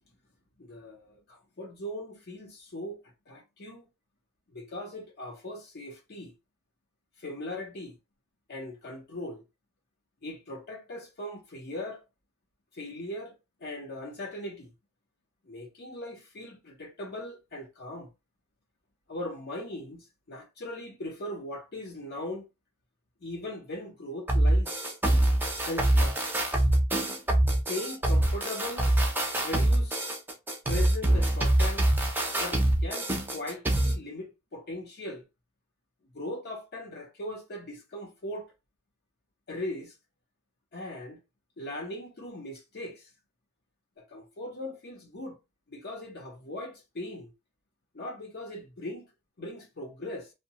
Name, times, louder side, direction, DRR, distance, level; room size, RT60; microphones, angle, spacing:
voice 1, 0.6-3.0 3.3-3.9 4.5-6.3 7.2-7.9 8.5-9.4 10.2-12.0 12.7-13.3 13.6-14.7 15.5-18.1 19.1-22.5 23.2-24.9 25.7-26.2 27.7-28.9 29.4-30.2 30.7-31.9 32.3-35.2 36.1-38.5 39.5-40.0 40.7-41.2 41.6-43.1 44.0-45.4 45.7-47.3 47.9-49.1 49.4-50.3, left 1 dB, 50° left, 0.7 m, -39 dB
sound 1, 24.3-34.0, right 1 dB, 10° right, 0.5 m, -25 dB
2.6 x 2.1 x 2.8 m
head